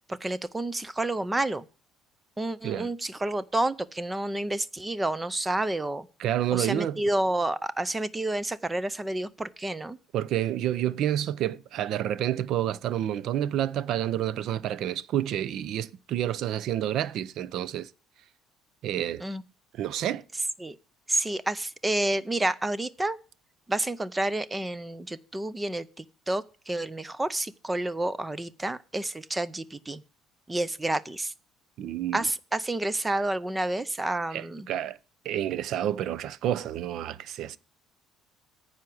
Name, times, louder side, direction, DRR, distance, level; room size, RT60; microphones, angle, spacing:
voice 1, 0.1-1.7 2.4-6.1 6.5-10.0 19.2-19.4 20.6-20.8 21.1-23.2 23.7-30.0 30.5-31.3 32.1-34.7, right 1 dB, 10° right, 0.5 m, -29 dB
voice 2, 6.2-7.0 10.1-17.9 18.8-19.2 19.8-20.2 31.8-32.2 34.3-35.0 35.2-37.6, right 11 dB, 55° right, 0.5 m, -29 dB
9.6 x 5.8 x 7.6 m
cardioid pair, 160°, 0 cm